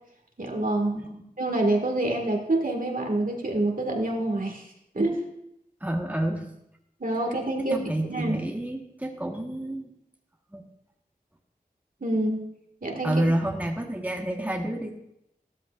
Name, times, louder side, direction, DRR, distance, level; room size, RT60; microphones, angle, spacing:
voice 1, 0.4-1.0 1.4-4.7 4.9-5.2 7.0-7.8 8.1-8.4 12.0-12.5 12.8-13.2, right 2 dB, 60° right, 1 dB, 1.9 m, -26 dB
voice 2, 5.8-6.5 7.7-9.9 10.5-10.7 13.0-14.9, right 1 dB, 10° right, 1 dB, 1.3 m, -29 dB
14.5 x 13.0 x 2.5 m, 0.80 s
wide cardioid pair, 45°, 16 cm